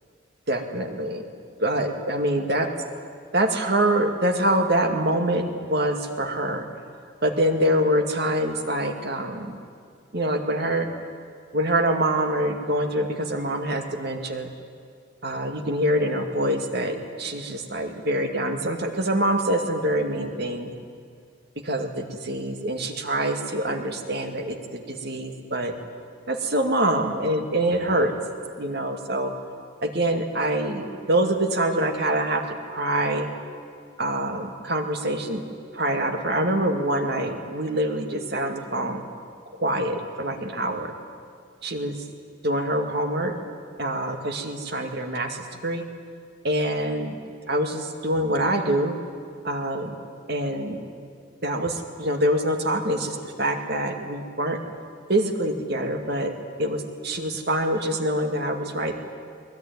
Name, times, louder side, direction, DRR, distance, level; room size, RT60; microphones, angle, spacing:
voice 1, 0.5-1.2 1.6-2.7 3.3-6.6 7.2-9.5 10.1-10.9 11.5-14.5 15.2-20.7 21.6-25.7 26.3-28.1 28.6-29.3 29.8-32.4 32.7-33.3 34.0-35.4 35.7-39.0 39.6-40.9 41.6-42.0 42.4-43.3 43.8-45.4 45.6-45.9 46.4-47.2 47.5-48.9 49.4-49.9 50.3-50.8 51.4-54.6 55.1-56.3 56.6-59.0, right 1 dB, 55° right, 4 dB, 2.2 m, -25 dB
21.5 x 21.5 x 9.5 m, 2.2 s
head